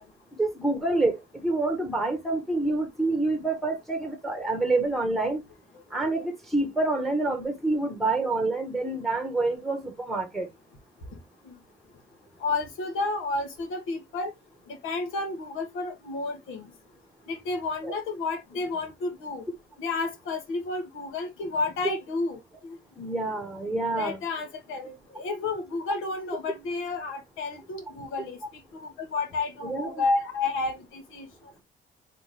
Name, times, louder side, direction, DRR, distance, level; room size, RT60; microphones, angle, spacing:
voice 1, 0.4-5.4 5.9-10.5 23.0-24.2 29.6-30.0, right 2 dB, ahead, 1.2 m, -27 dB
voice 2, 12.4-14.3 14.7-16.7 17.3-19.4 19.8-22.8 23.9-28.4 28.7-31.3, left 3 dB, 85° left, 1.5 m, -31 dB
3.6 x 3.3 x 3.1 m
cardioid pair, 90°, 20 cm